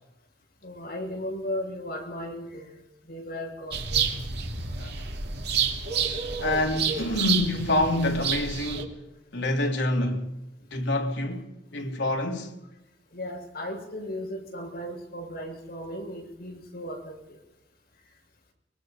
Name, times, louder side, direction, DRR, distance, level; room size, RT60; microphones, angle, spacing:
voice 1, 0.6-4.1 4.9-5.0 13.1-17.4, equal, 55° left, 6.4 m, -36 dB
sound 1, 3.7-8.8, right 6 dB, 65° right, 2.7 m, -29 dB
voice 2, 6.1-9.1 9.3-10.3 10.7-12.5, left 1 dB, 75° left, 3.3 m, -27 dB
24.0 x 22.0 x 5.4 m
head